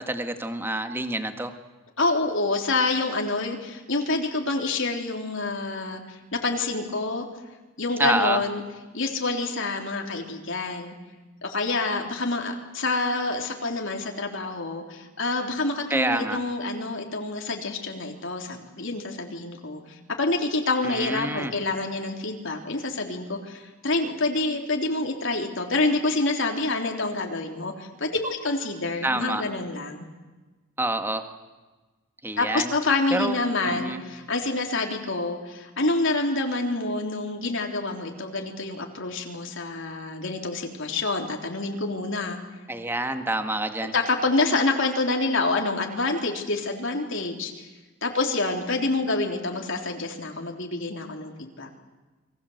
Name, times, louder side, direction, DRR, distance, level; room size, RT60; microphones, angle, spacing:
voice 1, 0.0-1.5 8.0-8.4 15.9-16.4 20.8-21.5 29.0-29.4 30.8-31.3 32.2-32.7 33.1-34.0 42.7-43.9, right 2 dB, 10° right, 7 dB, 1.8 m, -27 dB
voice 2, 2.0-7.2 7.8-8.6 8.9-10.9 11.4-30.1 32.4-42.4 43.9-47.7 48.0-51.7, left 3 dB, 60° left, 2 dB, 3.5 m, -27 dB
29.5 x 23.5 x 8.0 m, 1.2 s
head